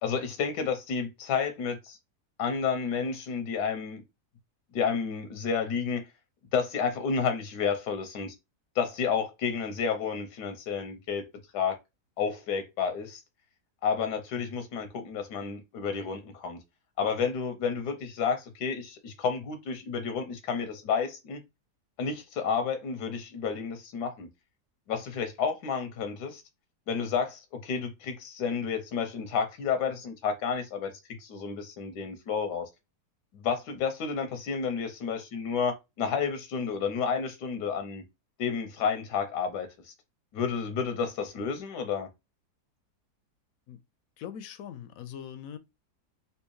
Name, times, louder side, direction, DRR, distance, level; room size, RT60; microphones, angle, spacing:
voice 1, 0.0-2.0 2.4-4.0 4.7-6.1 6.5-8.3 8.8-11.3 11.5-11.8 12.2-13.2 13.8-16.6 17.0-21.4 22.0-24.3 24.9-26.4 26.9-32.7 33.3-38.0 38.4-39.9 40.3-42.1, left 6 dB, 85° left, 1.3 m, -31 dB
voice 2, 44.2-45.6, left 9 dB, 70° left, 0.9 m, -41 dB
3.5 x 2.8 x 3.0 m
omnidirectional pair, 1.7 m